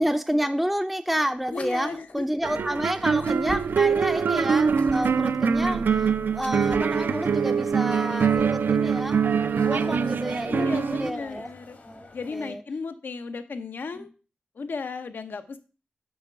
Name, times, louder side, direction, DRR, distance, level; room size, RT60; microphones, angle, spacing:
voice 1, 0.0-9.2 9.7-11.5 11.8-12.1 12.3-12.6 13.9-14.1, equal, ahead, 6 dB, 0.4 m, -29 dB
sound 1, 1.4-2.3 3.1-4.0 4.7-5.4 6.3-7.0 7.8-8.8 9.4-10.3, left 3 dB, 45° left, 0.6 m, -44 dB
voice 2, 1.5-2.3 10.5-11.8 12.1-14.1 14.6-15.6, left 4 dB, 85° left, 10 dB, 0.7 m, -35 dB
sound 2, 2.4-11.1, right 6 dB, 80° right, 0.4 m, -24 dB
sound 3, 6.6-12.5, left 3 dB, 60° left, 1.5 m, -49 dB
7.2 x 4.6 x 5.7 m, 0.35 s
wide cardioid pair, 105°, 3 cm